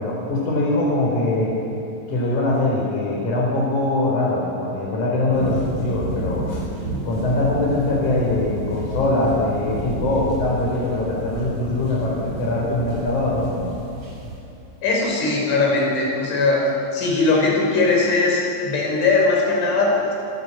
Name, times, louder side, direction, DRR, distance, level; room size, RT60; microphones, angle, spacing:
voice 1, 0.0-1.6 2.1-6.6 7.1-13.8, left 2 dB, 40° left, -4 dB, 5.3 m, -22 dB
sound 1, 5.3-14.4, right 2 dB, 30° right, 7.9 m, -31 dB
voice 2, 14.8-16.6 16.9-20.2, left 3 dB, 85° left, -2 dB, 8.1 m, -19 dB
26.0 x 17.5 x 8.6 m, 2.7 s
omnidirectional pair, 5.4 m